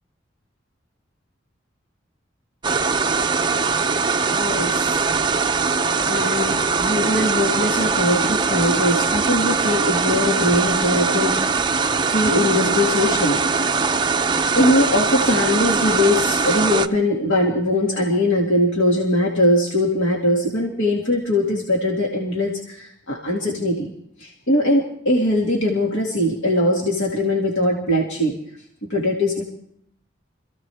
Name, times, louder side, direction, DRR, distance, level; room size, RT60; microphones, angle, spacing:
sound 1, 2.6-16.9, right 4 dB, 25° right, 0.6 m, -21 dB
voice 1, 4.3-5.0 6.1-11.7 12.1-13.4 14.5-23.9 24.2-28.4 28.9-29.4, left 1 dB, 85° left, -1 dB, 2.3 m, -21 dB
26.5 x 15.5 x 3.5 m, 0.69 s
head